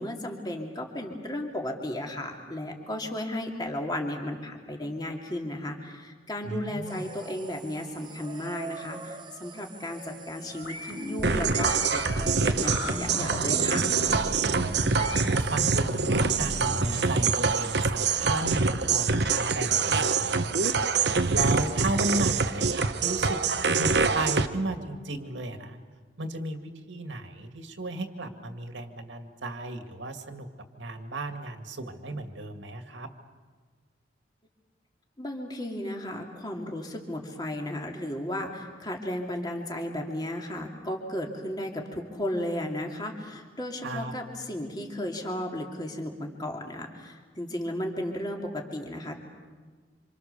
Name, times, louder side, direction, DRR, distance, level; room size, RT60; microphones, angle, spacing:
voice 1, 0.0-13.9 35.2-49.2, left 1 dB, 20° left, 1 dB, 2.7 m, -34 dB
voice 2, 6.4-7.0 14.9-20.7 21.3-23.4 23.8-25.8 26.2-30.5 30.8-33.1 43.8-44.1, right 2 dB, 80° right, 6 dB, 2.2 m, -34 dB
sound 1, 6.9-18.3, right 5 dB, 25° right, 1.1 m, -46 dB
sound 2, 10.6-17.1, left 1 dB, 85° left, 6.6 m, -35 dB
sound 3, 11.2-24.5, right 4 dB, 65° right, 1.0 m, -25 dB
27.0 x 26.5 x 7.0 m, 1.5 s
head